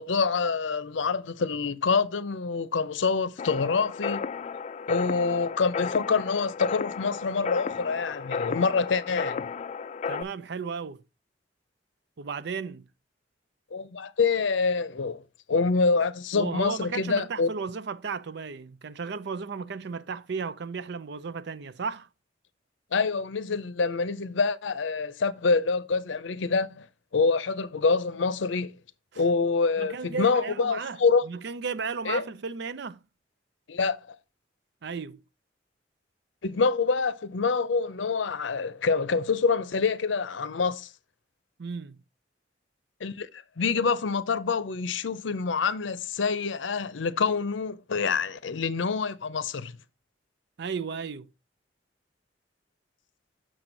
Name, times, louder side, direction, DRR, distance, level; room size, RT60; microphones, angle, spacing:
voice 1, 0.0-4.3 4.9-9.5 13.7-15.2 15.5-17.5 22.9-26.9 27.1-28.7 29.2-31.2 32.0-32.2 33.7-34.2 36.4-40.9 43.0-43.3 43.6-49.7, left 4 dB, 85° left, 0.6 m, -26 dB
sound 1, 3.4-10.2, left 5 dB, 40° left, 0.3 m, -33 dB
voice 2, 10.1-11.0 12.2-12.9 16.3-22.1 29.1-29.2 29.8-33.0 34.8-35.2 41.6-42.0 50.6-51.3, right 5 dB, 65° right, 0.5 m, -34 dB
6.4 x 6.2 x 3.9 m
head